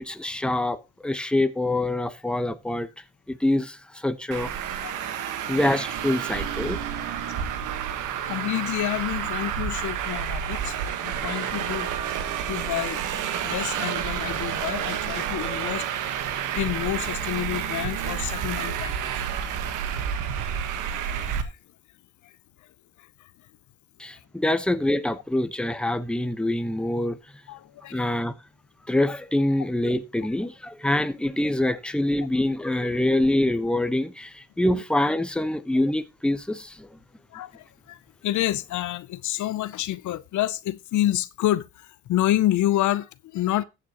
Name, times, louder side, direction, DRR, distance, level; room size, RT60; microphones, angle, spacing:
voice 1, 0.0-2.9 3.3-4.5 5.5-6.8 24.0-27.2 27.9-28.3 28.9-36.9, left 1 dB, 5° left, 1.0 m, -25 dB
Traffic noise roadway noise, 4.3-21.4, right 9 dB, 90° right, 1.3 m, -30 dB
voice 2, 8.2-10.8 11.0-11.9 12.2-15.9 16.5-19.1 21.1-21.2 21.4-21.6 22.2-22.3 23.0-23.1 27.5-28.0 34.6-34.8 37.3-43.6, left 14 dB, 75° left, 0.7 m, -28 dB
14.5 x 9.0 x 2.9 m
cardioid pair, 90°, 30 cm